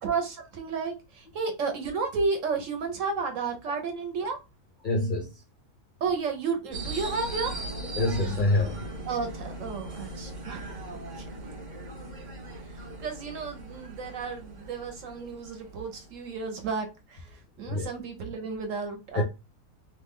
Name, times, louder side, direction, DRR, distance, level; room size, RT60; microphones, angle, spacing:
voice 1, 0.0-4.4 6.0-7.5 9.1-10.8 11.1-11.3 12.7-17.3 17.6-19.2, right 4 dB, 60° right, 1.0 m, -32 dB
voice 2, 4.8-5.4 7.8-8.8 15.2-15.3 17.7-17.9 19.1-19.2, left 2 dB, 80° left, 0.4 m, -26 dB
sound 1, 6.7-16.6, right 2 dB, 45° right, 0.6 m, -39 dB
3.0 x 2.2 x 3.5 m
omnidirectional pair, 1.7 m